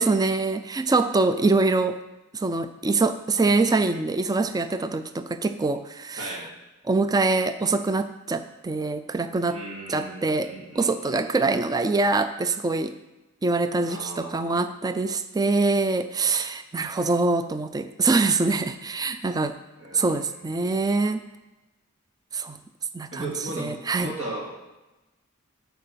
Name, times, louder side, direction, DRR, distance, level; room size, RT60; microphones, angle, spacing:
voice 1, 0.0-2.0 2.3-6.4 6.9-9.6 9.9-13.0 13.4-19.6 19.9-21.3 22.3-22.6 22.9-24.1, right 3 dB, 15° right, 10 dB, 0.3 m, -24 dB
voice 2, 6.2-6.5 9.5-11.6 13.8-14.6 19.8-20.8 23.1-24.5, right 1 dB, 60° right, -4 dB, 2.7 m, -38 dB
9.8 x 4.6 x 6.7 m, 1.0 s
head